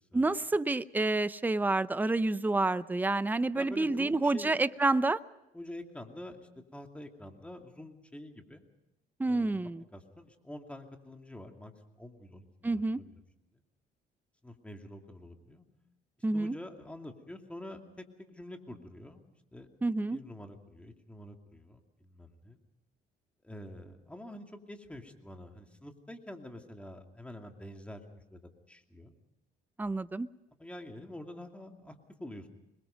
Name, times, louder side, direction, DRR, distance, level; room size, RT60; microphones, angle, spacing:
voice 1, 0.1-5.2 9.2-9.8 12.6-13.0 16.2-16.5 19.8-20.2 29.8-30.3, right 2 dB, 10° right, 15 dB, 0.7 m, -28 dB
voice 2, 3.5-4.5 5.5-8.7 9.2-13.2 13.5-13.6 14.4-15.6 16.3-17.8 18.2-19.2 19.5-19.7 20.1-22.6 23.4-28.4 28.7-29.1 30.6-32.5, left 1 dB, 5° left, 4 dB, 2.6 m, -47 dB
26.5 x 22.0 x 5.2 m, 0.90 s
cardioid pair, 110°, 17 cm